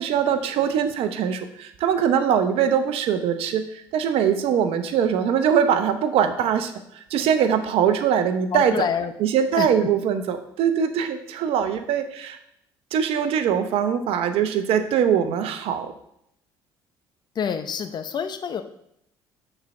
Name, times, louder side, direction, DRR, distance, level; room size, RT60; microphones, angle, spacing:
voice 1, 0.0-6.7 7.1-8.7 9.2-12.4 12.9-15.9, right 8 dB, 70° right, 9 dB, 0.8 m, -22 dB
voice 2, 8.5-9.1 9.6-9.7 17.4-18.6, left 7 dB, 45° left, 9 dB, 0.8 m, -27 dB
6.5 x 4.5 x 5.9 m, 0.75 s
supercardioid pair, 80°, 10 cm